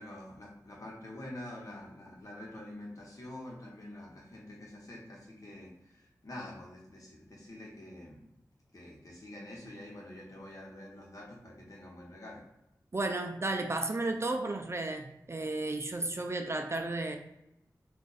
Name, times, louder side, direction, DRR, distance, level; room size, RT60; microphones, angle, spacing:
voice 1, 0.0-8.2 8.7-12.4, left 1 dB, 50° left, -3 dB, 1.1 m, -46 dB
voice 2, 12.9-17.2, right 2 dB, 40° right, 5 dB, 0.4 m, -33 dB
2.5 x 2.3 x 4.0 m, 0.85 s
wide cardioid pair, 50°, 7 cm